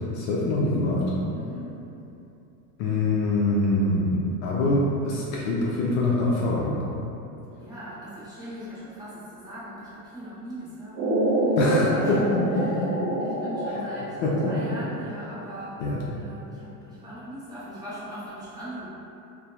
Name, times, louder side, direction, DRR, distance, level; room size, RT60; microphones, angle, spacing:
voice 1, 0.1-1.0 2.8-6.8 11.6-12.9 14.2-14.5 15.8-16.0, left 2 dB, 55° left, -5 dB, 0.5 m, -24 dB
voice 2, 1.3-1.8 7.6-11.6 11.9-12.9 13.2-15.8 16.1-18.9, equal, 10° right, -14 dB, 0.9 m, -40 dB
sound 1, 10.9-15.0, right 1 dB, 45° right, 0.4 m, -26 dB
2.7 x 2.1 x 2.3 m, 2.8 s
supercardioid pair, 120°, 47 cm